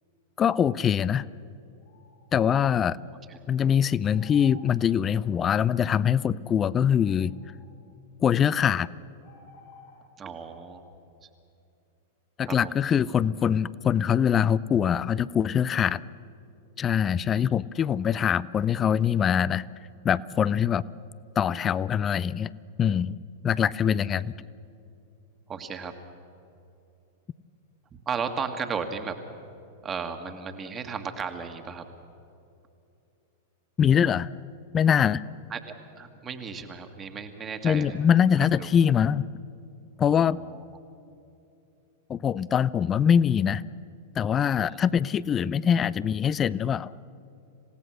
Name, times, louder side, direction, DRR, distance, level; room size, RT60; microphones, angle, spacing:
voice 1, 0.4-1.3 2.3-3.0 3.5-7.3 8.2-8.9 12.4-16.0 16.8-19.7 20.0-20.8 21.4-22.5 22.8-23.2 23.4-24.3 33.8-34.3 34.7-35.2 37.6-39.3 40.0-40.4 42.1-43.6 44.2-46.9, left 8 dB, 25° left, 21 dB, 0.5 m, -23 dB
sound 1, 1.7-2.3 4.1-4.7 6.1-6.2 6.8-7.7 8.6-8.7 9.2-10.1, left 3 dB, 60° left, 5.0 m, -54 dB
voice 2, 2.5-2.9 3.3-3.4 10.2-10.8 12.4-12.7 17.3-17.5 24.1-24.5 25.5-25.9 28.1-29.2 29.8-31.8 35.5-37.9 38.4-38.7 40.1-40.6 44.6-44.8, right 6 dB, 25° right, 6 dB, 1.8 m, -35 dB
27.0 x 17.0 x 6.4 m, 2.7 s
figure-of-eight pair, 95°, 0 cm